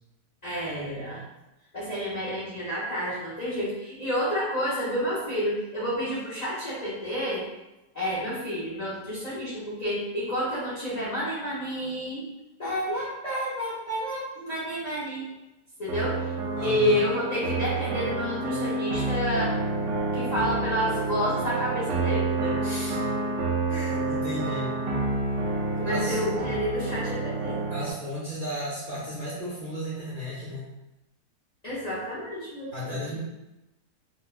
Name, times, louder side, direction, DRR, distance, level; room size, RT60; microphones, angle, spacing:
voice 1, 0.4-1.2 1.7-7.5 7.9-12.2 12.6-15.3 15.8-16.3 16.6-19.6 20.1-22.6 25.8-27.6 31.6-33.1, equal, 55° left, -9 dB, 0.4 m, -30 dB
sound 1, 15.9-27.9, right 3 dB, 75° right, 1.1 m, -29 dB
voice 2, 16.6-17.0 22.6-23.0 23.7-24.8 25.8-26.2 27.7-30.7 32.7-33.2, left 1 dB, 45° right, -9 dB, 0.7 m, -34 dB
4.4 x 2.1 x 2.3 m, 0.97 s
omnidirectional pair, 1.8 m